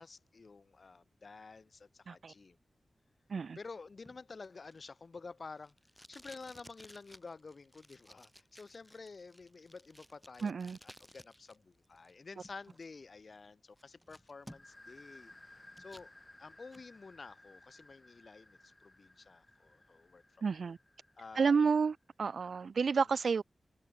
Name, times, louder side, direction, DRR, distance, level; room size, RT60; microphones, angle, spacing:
voice 1, 0.0-2.6 3.5-5.7 6.1-10.5 10.8-16.1 16.4-20.4 21.2-21.6, left 4 dB, 50° left, 1.5 m, -51 dB
Packing tape duct tape, 4.0-11.6 11.8-12.9 13.3-13.4 13.8-14.9 15.3-16.1 16.5-16.9, equal, ahead, 4.0 m, -57 dB
voice 2, 10.4-10.8 20.4-20.8 21.4-23.4, right 5 dB, 70° right, 0.4 m, -30 dB
sound 1, 14.5-22.0, left 2 dB, 25° left, 6.2 m, -59 dB
wide cardioid pair, 105°, 0 cm